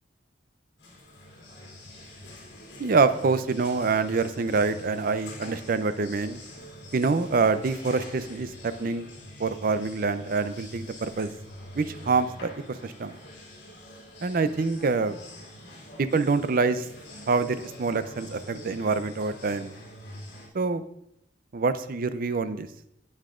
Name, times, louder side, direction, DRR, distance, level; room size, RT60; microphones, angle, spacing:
sound 1, 0.8-20.5, left 1 dB, 70° left, 2.4 m, -45 dB
voice 1, 2.8-6.4 6.9-9.1 9.4-11.3 11.8-12.5 12.8-13.1 14.2-15.2 16.0-16.9 17.3-19.8 20.5-20.8 21.5-22.7, right 4 dB, 50° right, 12 dB, 0.5 m, -26 dB
11.5 x 8.7 x 2.5 m, 0.78 s
head